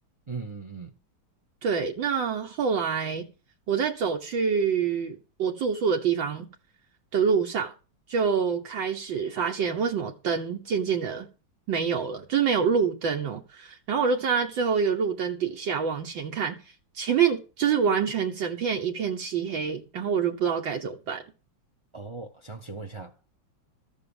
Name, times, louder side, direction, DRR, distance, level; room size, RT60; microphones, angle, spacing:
voice 1, 0.3-0.9 21.9-23.3, right 4 dB, 55° right, 0.3 m, -39 dB
voice 2, 1.6-3.2 3.7-6.5 7.1-7.7 8.1-11.3 11.7-16.6 17.0-21.2, right 6 dB, 70° right, 1.8 m, -26 dB
13.5 x 6.7 x 7.0 m
omnidirectional pair, 2.2 m